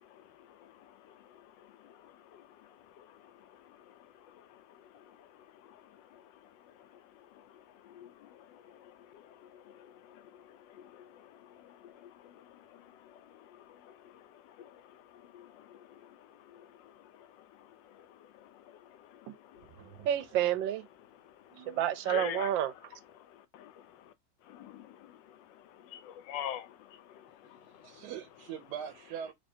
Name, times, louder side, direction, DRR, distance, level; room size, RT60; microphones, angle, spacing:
voice 1, 0.6-2.4 3.0-3.1 3.7-3.9 4.3-4.6 4.9-5.3 5.7-5.8 6.1-6.2 7.3-7.4 7.8-17.3 17.6-18.6 18.9-19.7 21.5-21.6 22.1-22.5 23.3-23.7 24.5-25.4 25.7-28.0, left 10 dB, 80° left, 1.3 m, -48 dB
voice 2, 20.0-20.8 21.6-22.7, right 11 dB, 90° right, 1.3 m, -29 dB
voice 3, 27.4-29.3, right 8 dB, 70° right, 1.1 m, -42 dB
3.4 x 3.2 x 2.6 m
omnidirectional pair, 2.0 m